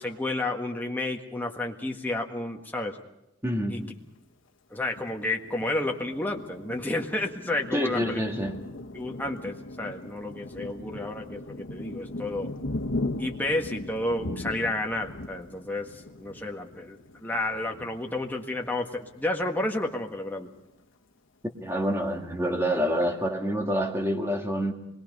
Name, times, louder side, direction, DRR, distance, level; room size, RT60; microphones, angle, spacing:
voice 1, 0.0-3.0 3.7-3.8 4.7-8.2 8.9-12.5 13.2-20.5, left 2 dB, 10° left, 1 dB, 1.6 m, -31 dB
voice 2, 3.4-3.9 7.7-8.6 21.6-24.7, equal, 10° right, 3 dB, 1.9 m, -27 dB
Thunder, 4.9-19.3 19.7-19.9 20.2-20.8, left 2 dB, 90° left, 1.2 m, -39 dB
25.5 x 22.0 x 5.4 m, 0.94 s
head